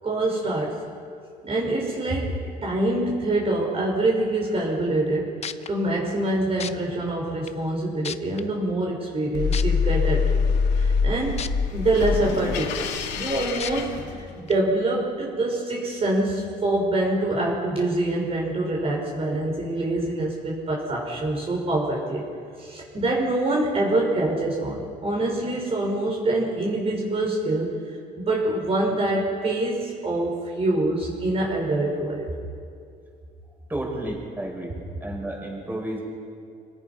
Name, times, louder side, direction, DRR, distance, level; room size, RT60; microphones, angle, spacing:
voice 1, 0.0-0.8 1.4-10.2 10.7-11.4 11.7-22.2 22.6-27.8 28.2-32.3, right 2 dB, 35° right, -2 dB, 5.4 m, -25 dB
sound 1, 5.1-5.2 5.4-5.7 6.6-6.7 7.5-7.6 8.0-8.4 9.5-9.6 11.4-11.5 12.0-12.1 13.6-13.7 14.5-14.6, left 7 dB, 40° left, 0.9 m, -32 dB
sound 2, 9.3-14.6, left 5 dB, 90° left, 2.4 m, -25 dB
voice 2, 33.7-34.7 35.0-36.0, right 1 dB, 10° right, -1 dB, 6.7 m, -31 dB
28.0 x 18.5 x 5.6 m, 2.4 s
cardioid pair, 110°, 17 cm